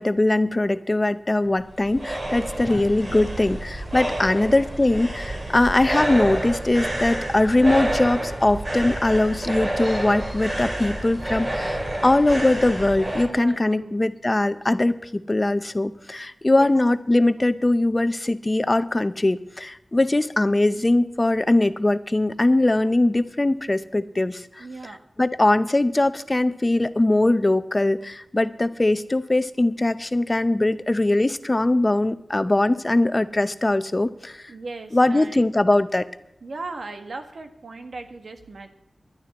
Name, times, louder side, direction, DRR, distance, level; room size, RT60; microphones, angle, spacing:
voice 1, 0.0-24.6 25.2-34.5 34.9-36.1, left 2 dB, 35° left, 13 dB, 0.7 m, -21 dB
sound 1, 1.4-13.3, right 1 dB, 50° right, 3.9 m, -29 dB
voice 2, 13.2-14.0 16.5-16.7 24.6-25.0 34.5-35.5 36.4-38.7, right 3 dB, 80° right, 7 dB, 1.4 m, -38 dB
19.5 x 11.5 x 4.2 m, 0.84 s
cardioid pair, 50°, 0 cm